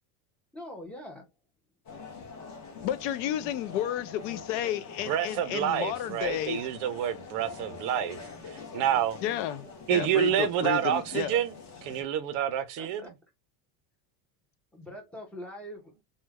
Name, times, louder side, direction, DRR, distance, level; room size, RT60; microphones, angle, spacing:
voice 1, 0.5-1.3 12.8-13.1 14.7-15.9, left 1 dB, 5° left, 0.5 m, -43 dB
sound 1, 1.9-12.0, left 4 dB, 35° left, 1.0 m, -45 dB
voice 2, 2.8-6.7 9.2-11.4, left 11 dB, 60° left, 0.5 m, -32 dB
voice 3, 5.1-8.2 8.7-9.2 9.9-11.5 11.8-13.0, right 10 dB, 45° right, 0.5 m, -28 dB
3.0 x 2.2 x 3.4 m
cardioid pair, 165°, 46 cm